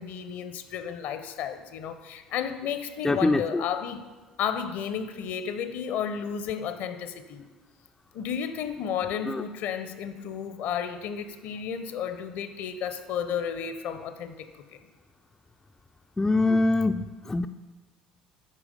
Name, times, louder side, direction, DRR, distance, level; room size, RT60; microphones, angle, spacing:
voice 1, 0.0-4.0 4.4-7.4 8.1-14.8, left 8 dB, 55° left, 10 dB, 0.7 m, -32 dB
voice 2, 3.0-3.6 9.3-9.4 16.2-17.5, left 2 dB, 10° left, 7 dB, 0.3 m, -24 dB
8.4 x 4.8 x 5.1 m, 1.3 s
figure-of-eight pair, 60°, 4 cm